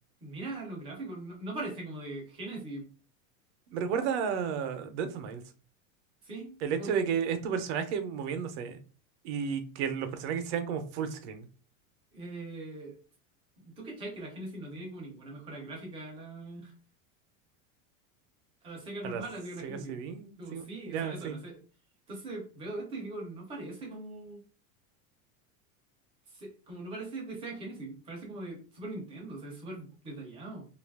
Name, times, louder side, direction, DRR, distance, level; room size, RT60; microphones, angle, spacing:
voice 1, 0.2-2.9 6.2-7.0 12.1-13.0 13.6-16.7 18.6-20.0 20.4-21.6 22.1-24.4 26.3-30.7, right 2 dB, 15° right, 0.4 m, -41 dB
voice 2, 3.7-5.4 6.6-8.8 9.2-11.5 19.0-19.2 19.6-21.4, right 7 dB, 55° right, 0.6 m, -33 dB
2.6 x 2.4 x 3.4 m
supercardioid pair, 175°, 41 cm